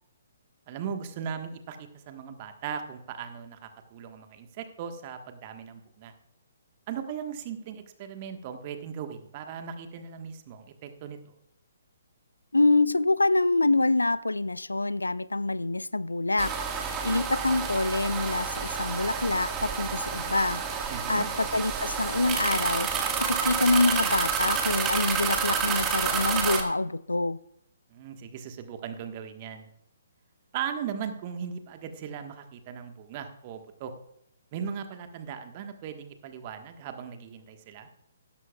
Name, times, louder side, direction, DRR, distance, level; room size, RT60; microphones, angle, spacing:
voice 1, 0.7-6.1 6.9-11.3 20.9-21.3 27.9-29.7 30.5-33.9 34.5-37.9, right 7 dB, 30° right, 1.4 m, -38 dB
voice 2, 12.5-16.6 17.0-20.6 21.1-27.4, left 2 dB, 75° left, 0.5 m, -26 dB
sound 1, 16.4-26.6, right 6 dB, 15° right, 1.7 m, -29 dB
16.0 x 13.0 x 2.4 m
figure-of-eight pair, 130°, 0 cm